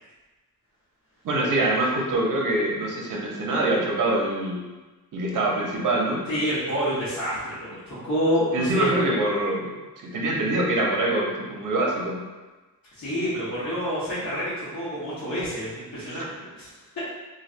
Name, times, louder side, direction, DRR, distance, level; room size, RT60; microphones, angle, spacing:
voice 1, 1.2-4.6 5.1-6.3 8.5-12.2 16.0-16.2, right 1 dB, 60° right, -2 dB, 0.7 m, -25 dB
voice 2, 6.3-8.9 12.9-16.7 16.9-17.0, equal, 50° left, -13 dB, 1.1 m, -28 dB
3.2 x 2.5 x 2.5 m, 1.2 s
cardioid pair, 100°, 36 cm